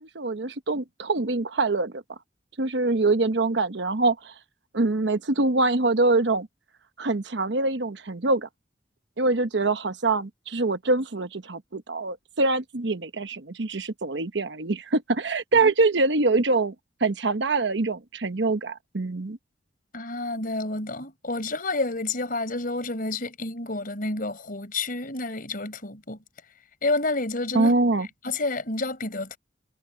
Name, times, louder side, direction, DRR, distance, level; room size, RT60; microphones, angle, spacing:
voice 1, 0.0-2.0 2.6-4.3 4.7-6.5 7.0-8.5 9.2-16.7 17.0-19.4 27.5-28.1, right 3 dB, 70° right, 1.0 m, -24 dB
voice 2, 19.9-26.2 26.8-27.7 28.2-29.4, left 2 dB, 50° left, 4.5 m, -29 dB
head